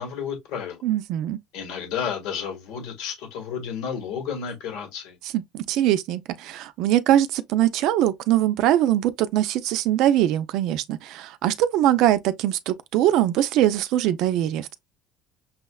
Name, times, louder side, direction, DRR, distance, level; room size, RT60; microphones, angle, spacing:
voice 1, 0.0-0.8 1.5-5.1, left 7 dB, 75° left, 1.4 m, -31 dB
voice 2, 0.8-1.4 5.2-14.7, right 12 dB, 65° right, 0.4 m, -22 dB
6.2 x 2.1 x 2.3 m
cardioid pair, 145°, 0 cm